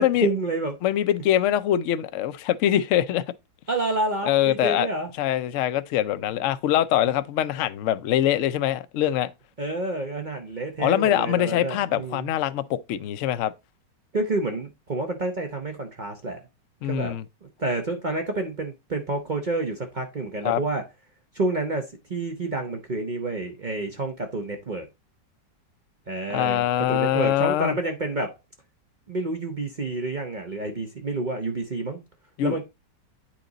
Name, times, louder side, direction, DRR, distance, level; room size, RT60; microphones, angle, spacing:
voice 1, 0.0-0.7 3.7-5.1 9.6-12.3 14.1-16.4 16.9-17.2 17.4-20.8 21.3-24.9 26.1-28.3 29.1-32.0 32.4-32.6, right 2 dB, 45° right, 0.6 m, -29 dB
voice 2, 0.8-3.2 4.3-4.9 5.2-9.3 10.8-13.5 16.8-17.2 20.4-20.6 26.3-27.8 32.4-32.6, left 12 dB, 75° left, 0.7 m, -23 dB
9.1 x 3.9 x 3.9 m
omnidirectional pair, 1.9 m